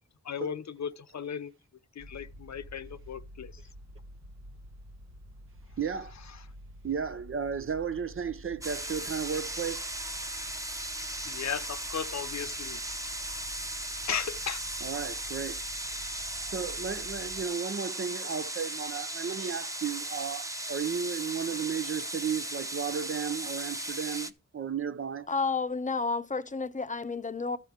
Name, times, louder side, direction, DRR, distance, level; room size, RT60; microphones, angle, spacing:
voice 1, 0.2-1.5 1.9-3.5 11.2-12.8 14.1-14.7, left 7 dB, 70° left, 0.8 m, -36 dB
sound 1, 2.0-17.5, equal, 65° right, 1.1 m, -50 dB
voice 2, 5.8-6.1 6.8-9.9 14.8-15.6 16.4-25.3, right 7 dB, 45° right, 0.6 m, -34 dB
sound 2, 8.6-24.3, right 1 dB, 10° right, 0.8 m, -37 dB
voice 3, 25.3-27.6, left 4 dB, 25° left, 0.7 m, -31 dB
13.0 x 4.9 x 5.0 m
cardioid pair, 65°, 29 cm